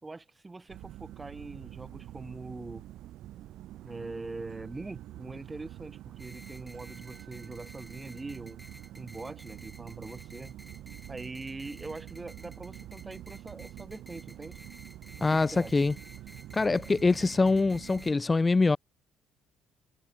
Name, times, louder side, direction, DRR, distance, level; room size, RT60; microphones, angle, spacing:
voice 1, 0.0-2.9 3.8-8.6 9.0-10.6 11.1-14.6 15.2-15.8, right 3 dB, 15° right, 2.4 m, -43 dB
sound 1, 0.7-18.1, right 14 dB, 75° right, 1.3 m, -46 dB
sound 2, 6.2-18.1, equal, ahead, 1.1 m, -53 dB
voice 2, 15.2-15.9 16.5-18.8, left 3 dB, 20° left, 0.3 m, -24 dB
cardioid pair, 125°, 0 cm